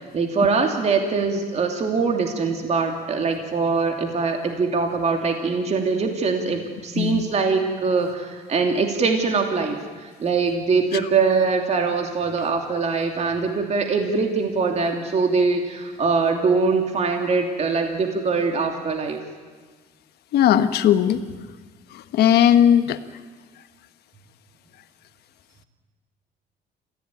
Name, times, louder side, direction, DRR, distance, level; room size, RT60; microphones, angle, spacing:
voice 1, 0.0-19.2, right 4 dB, 40° right, 3 dB, 2.8 m, -23 dB
voice 2, 20.3-21.2 21.9-23.0, left 10 dB, 75° left, 10 dB, 1.4 m, -17 dB
26.5 x 16.0 x 9.4 m, 1.4 s
cardioid pair, 110°, 17 cm